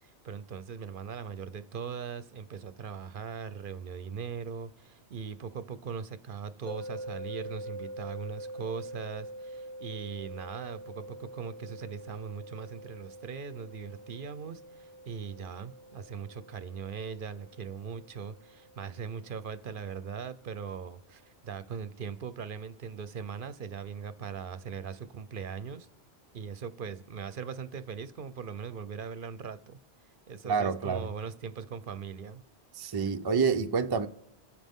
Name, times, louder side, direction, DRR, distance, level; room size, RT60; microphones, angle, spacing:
voice 1, 0.0-25.9 26.3-29.8 30.3-32.4, right 6 dB, 55° right, 0.7 m, -40 dB
sound 1, 6.7-19.7, right 1 dB, ahead, 1.4 m, -45 dB
voice 2, 30.4-31.1 32.7-34.1, right 5 dB, 35° right, 0.4 m, -28 dB
27.5 x 9.4 x 3.6 m
omnidirectional pair, 1.1 m